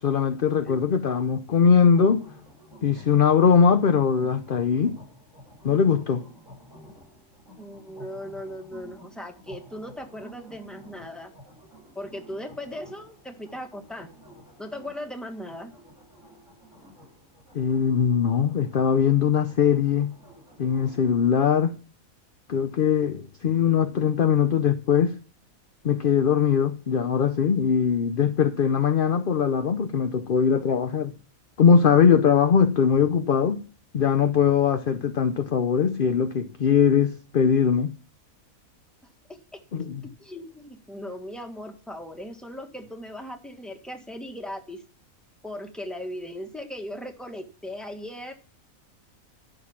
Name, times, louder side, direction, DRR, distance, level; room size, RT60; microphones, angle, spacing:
voice 1, 0.0-2.2 2.8-5.0 5.6-6.3 17.5-20.1 20.6-21.8 22.5-25.2 25.8-31.1 31.6-33.6 33.9-37.9 39.7-40.0, left 7 dB, 50° left, 0.8 m, -21 dB
sound 1, 1.8-21.0, equal, 60° right, 6.9 m, -51 dB
voice 2, 7.6-11.3 11.9-14.1 14.6-15.7 40.0-44.8 45.4-48.3, left 1 dB, ahead, 1.7 m, -38 dB
12.0 x 6.5 x 7.3 m
omnidirectional pair, 1.5 m